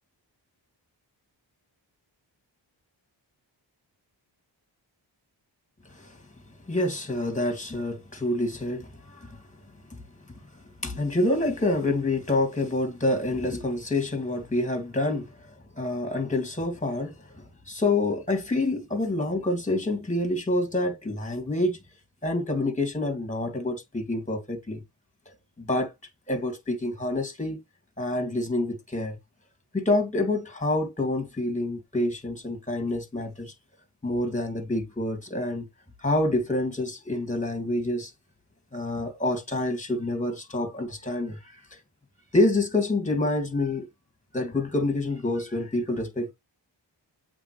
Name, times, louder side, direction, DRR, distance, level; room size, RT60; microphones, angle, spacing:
voice 1, 5.9-6.2 6.7-9.4 9.9-10.0 10.8-21.8 22.2-24.8 25.3-25.9 26.3-27.6 28.0-29.2 29.7-33.5 34.0-35.7 36.0-38.1 38.7-41.8 42.3-43.9 44.3-46.3, left 2 dB, 15° left, 2.5 m, -27 dB
8.1 x 3.6 x 3.3 m
wide cardioid pair, 65°, 45 cm